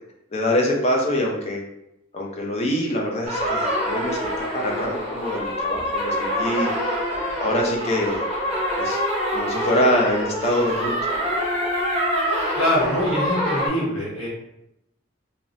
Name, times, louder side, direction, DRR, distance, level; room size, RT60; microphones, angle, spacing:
voice 1, 0.3-1.6 2.1-6.7 7.4-8.2 8.8-9.0 9.3-11.1, left 1 dB, 30° left, -1 dB, 0.5 m, -24 dB
sound 1, 3.2-13.7, equal, 30° right, 0.6 m, -25 dB
voice 2, 12.1-14.3, left 1 dB, 80° left, -4 dB, 0.9 m, -24 dB
2.8 x 2.1 x 2.5 m, 0.82 s
head